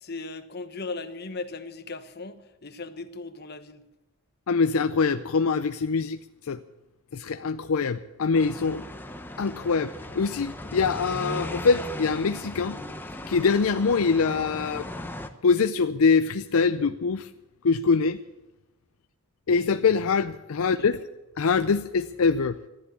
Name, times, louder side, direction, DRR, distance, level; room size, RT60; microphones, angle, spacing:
voice 1, 0.0-3.8 20.6-20.9, left 3 dB, 45° left, 1.1 m, -38 dB
voice 2, 4.5-6.2 6.5-6.6 7.1-8.8 9.4-12.8 13.3-14.9 15.4-17.3 17.6-18.2 19.5-21.0 21.4-22.6, left 5 dB, 70° left, 0.5 m, -24 dB
sound 1, 8.3-15.3, left 1 dB, 10° left, 0.8 m, -37 dB
14.0 x 10.5 x 8.4 m
head